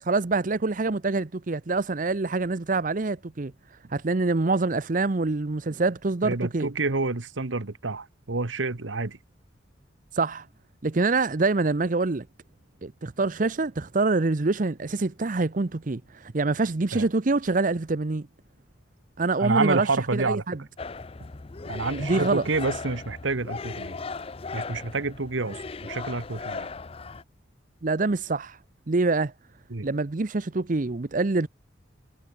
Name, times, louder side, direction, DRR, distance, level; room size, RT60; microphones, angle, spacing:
voice 1, 0.0-3.5 3.9-6.7 10.1-10.5 10.8-12.3 12.8-18.3 19.2-19.9 20.1-20.6 22.0-22.4 27.8-28.6 28.9-29.3 29.8-31.5, right 3 dB, 45° right, 0.7 m, -25 dB
voice 2, 6.2-9.2 16.9-17.1 19.4-20.4 21.7-24.0 24.5-26.7 29.7-29.9, right 3 dB, 85° right, 1.3 m, -28 dB
sound 1, 20.8-27.2, left 4 dB, 30° left, 0.6 m, -37 dB
head